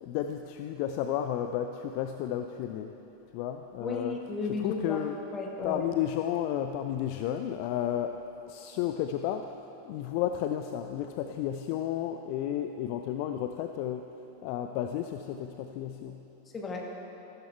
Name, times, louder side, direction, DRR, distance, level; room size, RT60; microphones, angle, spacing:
voice 1, 0.0-2.9 3.3-4.2 4.6-5.2 5.6-8.2 8.5-9.6 9.8-14.1 14.4-16.3, left 10 dB, 45° left, 7 dB, 0.5 m, -32 dB
voice 2, 3.8-5.0 5.3-5.8 16.5-16.9, left 4 dB, 20° left, 0 dB, 1.8 m, -34 dB
14.5 x 12.5 x 4.6 m, 3.0 s
figure-of-eight pair, 90°, 0 cm